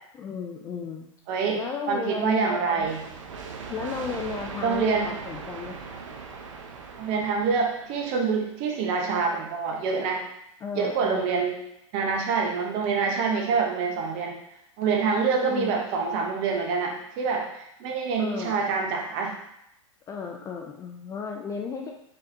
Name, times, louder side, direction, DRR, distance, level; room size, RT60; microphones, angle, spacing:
voice 1, 0.1-1.1 1.5-3.0 3.7-5.8 10.6-11.3 15.4-15.7 18.2-18.6 20.1-21.9, left 6 dB, 20° left, 2 dB, 0.4 m, -34 dB
voice 2, 1.3-1.6 1.9-3.0 4.6-5.1 7.0-10.3 10.7-11.6 11.9-14.4 14.8-19.4, right 5 dB, 40° right, 2 dB, 0.9 m, -26 dB
sound 1, 2.8-8.4, right 5 dB, 75° right, 0.6 m, -40 dB
4.0 x 3.9 x 2.6 m, 0.79 s
hypercardioid pair, 110°, 17 cm